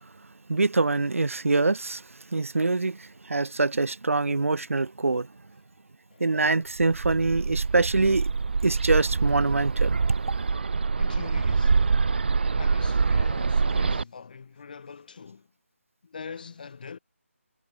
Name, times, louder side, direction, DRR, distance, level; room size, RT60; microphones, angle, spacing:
voice 1, 0.5-2.0 2.3-5.3 6.2-8.3 8.6-10.0, right 3 dB, 70° right, 2.5 m, -24 dB
Bird, 6.8-14.0, right 4 dB, 45° right, 0.5 m, -25 dB
voice 2, 11.0-11.8 12.6-15.5 16.0-17.0, left 5 dB, 35° left, 6.4 m, -42 dB
figure-of-eight pair, 170°, 8 cm